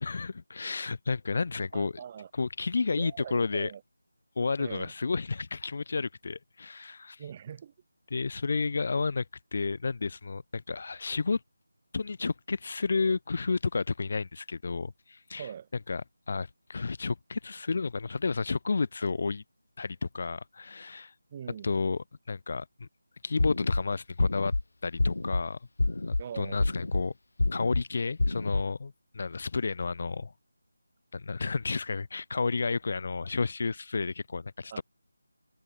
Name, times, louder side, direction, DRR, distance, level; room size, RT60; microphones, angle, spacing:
voice 1, 0.0-1.9 2.4-3.7 4.4-7.2 8.1-9.3 9.5-11.4 11.9-15.4 15.9-16.0 16.3-19.4 19.8-21.1 21.6-22.0 22.3-22.9 23.2-24.5 24.8-25.6 26.1-27.1 27.5-30.3 31.1-34.8, left 4 dB, 40° left, 0.9 m, -31 dB
voice 2, 1.7-2.3 3.0-3.8 4.6-4.9 7.2-7.7 15.4-15.7 21.3-21.8 26.2-26.8 34.7-34.8, right 8 dB, 20° right, 1.1 m, -42 dB
sound 1, 23.4-23.8 24.2-24.6 25.0-25.4 25.8-26.2 26.6-27.0 27.4-27.8 28.2-28.6, left 2 dB, 70° left, 0.4 m, -27 dB
figure-of-eight pair, 175°, 0 cm